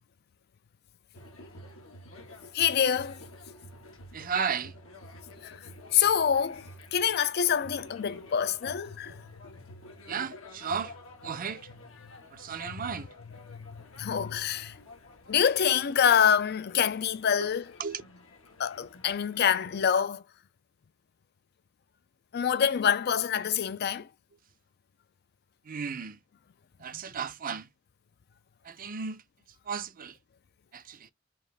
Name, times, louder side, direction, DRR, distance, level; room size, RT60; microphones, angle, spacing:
sound 1, 1.1-19.9, left 1 dB, 85° left, 1.3 m, -50 dB
voice 1, 2.5-3.2 5.4-5.6 5.9-6.7 6.9-9.1 13.5-14.8 15.3-17.6 18.6-20.2 22.3-24.1, left 8 dB, 50° left, 0.4 m, -26 dB
voice 2, 4.1-4.8 10.1-11.7 12.3-13.1 17.4-17.5 17.8-18.0 25.6-26.2 26.8-27.7 28.6-29.2 29.6-30.2 30.7-31.1, right 6 dB, 45° right, 0.6 m, -34 dB
4.9 x 2.5 x 3.2 m
head